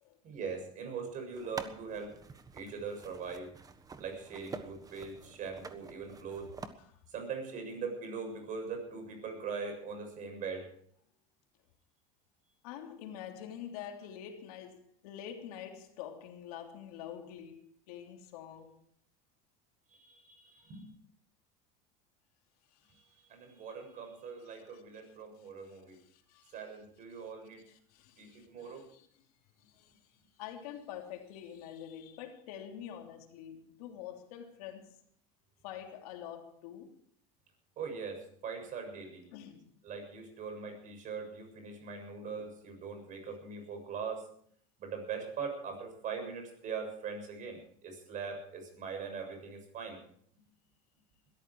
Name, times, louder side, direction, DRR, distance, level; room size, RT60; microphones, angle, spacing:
voice 1, 0.2-2.1 2.5-3.5 4.0-6.5 7.1-10.7 19.9-20.9 23.3-26.0 26.5-27.6 28.2-28.8 37.8-39.2 39.8-44.2 44.8-50.0, right 5 dB, 45° right, 7.1 m, -41 dB
sound 1, 1.3-6.7, right 4 dB, 20° right, 1.4 m, -48 dB
voice 2, 12.6-18.8 22.7-22.9 24.4-26.8 27.1-27.2 27.7-29.2 29.6-35.0 35.6-37.0 39.3-39.8, left 9 dB, 85° left, 3.3 m, -47 dB
21.0 x 13.5 x 4.8 m
supercardioid pair, 125°, 19 cm